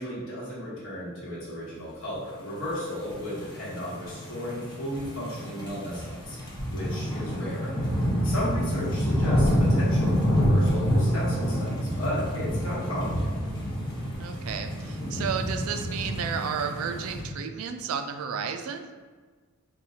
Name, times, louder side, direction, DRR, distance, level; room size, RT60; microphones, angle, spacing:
voice 1, 0.0-6.4 6.7-7.7 8.2-13.3, equal, 60° left, -8 dB, 1.2 m, -34 dB
sound 1, 2.9-17.2, equal, 20° left, 0.7 m, -27 dB
voice 2, 14.2-18.9, right 7 dB, 65° right, 7 dB, 0.3 m, -32 dB
4.2 x 2.3 x 2.7 m, 1.5 s
head